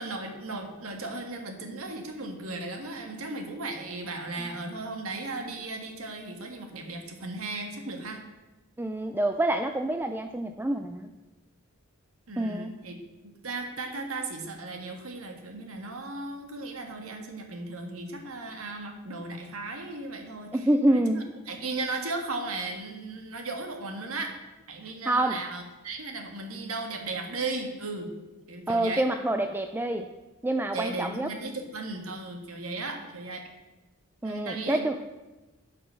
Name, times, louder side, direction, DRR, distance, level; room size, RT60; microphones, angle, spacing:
voice 1, 0.0-8.2 12.3-13.0 13.2-24.3 24.7-28.1 28.5-29.0 30.7-33.4 34.2-34.9, right 3 dB, 80° right, 4 dB, 1.6 m, -36 dB
voice 2, 8.8-11.1 12.4-12.7 20.5-21.3 25.1-25.4 28.7-30.1 30.4-31.3 34.2-35.0, right 1 dB, 10° right, 7 dB, 0.4 m, -27 dB
11.0 x 6.1 x 6.3 m, 1.1 s
head